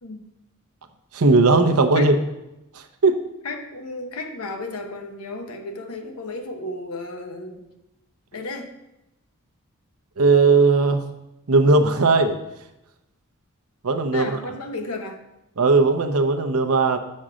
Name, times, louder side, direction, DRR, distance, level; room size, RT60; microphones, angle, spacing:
voice 1, 1.1-2.2 2.7-3.2 10.2-11.0 11.5-12.4 13.8-14.3 15.6-17.0, right 3 dB, 80° right, 7 dB, 0.7 m, -17 dB
voice 2, 3.4-7.7 8.3-8.7 14.1-15.2, left 2 dB, 85° left, 5 dB, 1.0 m, -33 dB
7.4 x 5.4 x 4.9 m, 0.92 s
head